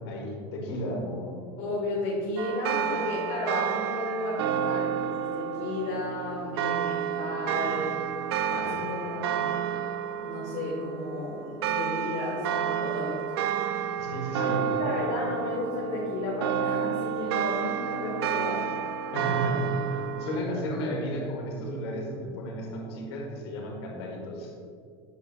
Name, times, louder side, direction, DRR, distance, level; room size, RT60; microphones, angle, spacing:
voice 1, 0.1-1.4 8.6-8.8 14.0-14.6 19.1-24.5, equal, 80° left, 0 dB, 1.6 m, -33 dB
voice 2, 1.6-7.9 8.5-9.6 10.2-13.2 14.4-18.7, left 2 dB, 65° left, -4 dB, 1.4 m, -33 dB
sound 1, 2.4-20.4, right 8 dB, 85° right, 0.4 m, -30 dB
9.1 x 5.7 x 2.4 m, 2.2 s
supercardioid pair, 125°, 13 cm